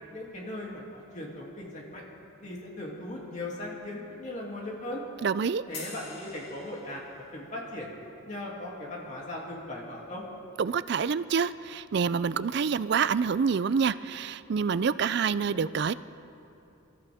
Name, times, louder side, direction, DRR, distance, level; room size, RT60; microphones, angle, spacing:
voice 1, 0.1-2.0 2.4-5.0 5.7-7.0 7.3-7.9 8.3-10.2, left 1 dB, 35° left, -3 dB, 2.7 m, -38 dB
voice 2, 5.2-5.6 10.6-15.9, right 6 dB, 55° right, 16 dB, 0.4 m, -27 dB
sound 1, 5.7-7.4, left 3 dB, 50° left, 2.6 m, -44 dB
28.0 x 13.5 x 3.6 m, 2.9 s
head